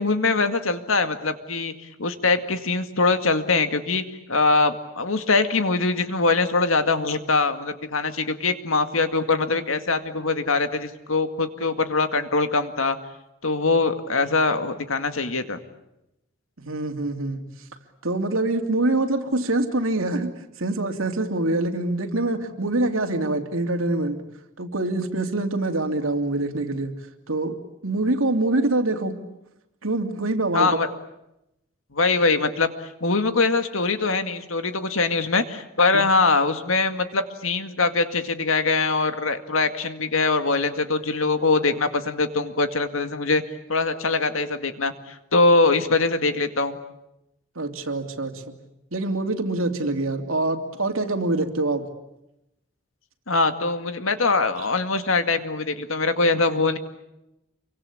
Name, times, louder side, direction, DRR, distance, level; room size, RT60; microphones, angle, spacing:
voice 1, 0.0-1.7 2.0-4.0 4.3-13.0 13.4-15.6 30.5-30.9 31.9-32.7 33.0-43.4 43.7-46.8 53.3-56.8, left 3 dB, 85° left, 8 dB, 2.2 m, -22 dB
voice 2, 16.6-17.4 18.0-24.2 24.6-26.9 27.3-27.6 27.8-29.2 29.8-30.8 35.9-36.1 47.5-48.4 48.9-51.8 54.6-54.7, right 2 dB, 85° right, 5 dB, 2.8 m, -25 dB
28.5 x 24.0 x 8.6 m, 0.87 s
head